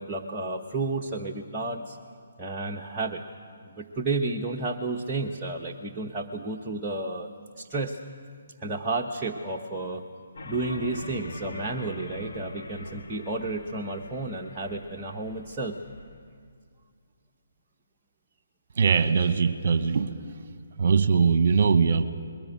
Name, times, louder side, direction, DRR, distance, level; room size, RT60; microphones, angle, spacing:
voice 1, 0.0-2.0 2.4-3.2 3.7-7.3 7.6-8.0 8.6-10.0 10.5-15.8, right 2 dB, 15° right, -2 dB, 1.1 m, -31 dB
sound 1, 10.4-16.0, left 2 dB, 55° left, 3.3 m, -42 dB
voice 2, 18.8-20.2 20.8-22.0, right 5 dB, 50° right, 11 dB, 1.2 m, -21 dB
21.5 x 16.0 x 8.3 m, 2.1 s
figure-of-eight pair, 140°, 0 cm